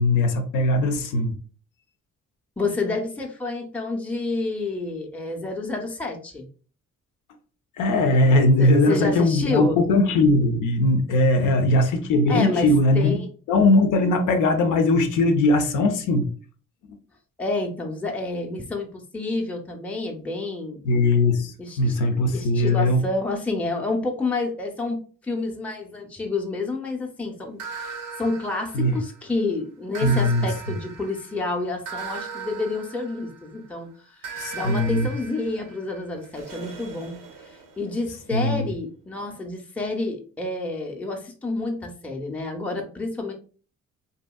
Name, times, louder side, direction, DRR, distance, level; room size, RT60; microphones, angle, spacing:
voice 1, 0.0-1.3 7.8-13.2 13.5-16.3 20.8-23.0 28.7-29.0 30.0-30.5 34.4-35.1 38.3-38.7, left 2 dB, 80° left, 6 dB, 0.5 m, -20 dB
voice 2, 2.6-6.5 8.6-9.8 12.3-13.3 17.4-20.8 21.6-22.0 22.3-43.3, left 3 dB, 5° left, 1 dB, 0.5 m, -29 dB
sound 1, 27.6-29.3 29.9-33.6 34.2-38.0, right 5 dB, 90° right, 0.7 m, -38 dB
2.8 x 2.6 x 2.2 m, 0.39 s
cardioid pair, 90°, 30 cm